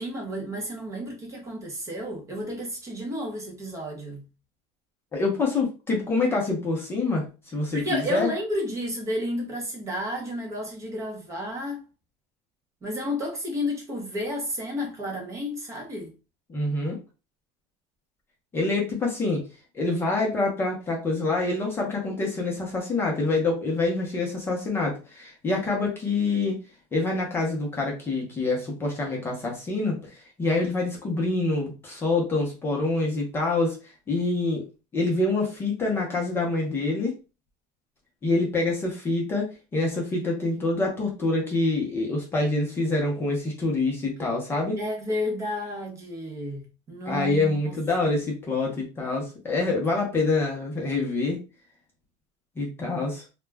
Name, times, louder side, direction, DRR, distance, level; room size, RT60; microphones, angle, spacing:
voice 1, 0.0-4.2 7.7-11.8 12.8-16.1 44.8-47.7, equal, 20° right, 0.7 m, -31 dB
voice 2, 5.1-8.3 16.5-17.0 18.5-19.4 19.7-26.6 26.9-33.8 34.1-34.6 34.9-37.1 38.2-44.8 47.1-51.4 52.6-53.2, left 3 dB, 15° left, 0.6 m, -26 dB
2.3 x 2.1 x 3.3 m
cardioid pair, 170°, 14 cm